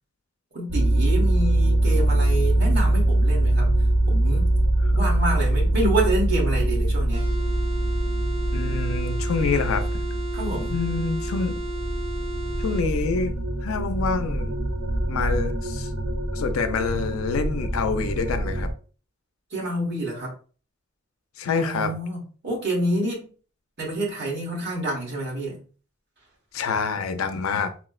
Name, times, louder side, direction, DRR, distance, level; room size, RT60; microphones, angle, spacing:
voice 1, 0.5-3.7 4.1-4.5 4.9-7.3 10.3-10.8 19.5-20.3 21.6-23.3 23.8-25.6, right 1 dB, 55° right, 1.3 m, -28 dB
sound 1, 0.7-18.7, right 1 dB, 80° right, 0.6 m, -23 dB
sound 2, 7.1-12.9, right 1 dB, 25° right, 0.4 m, -34 dB
voice 2, 8.5-10.0 10.7-11.6 12.6-13.3 13.6-14.5 15.1-15.9 16.3-18.7 21.4-21.9 26.5-27.7, left 4 dB, 90° left, 0.5 m, -27 dB
4.2 x 2.1 x 2.3 m
head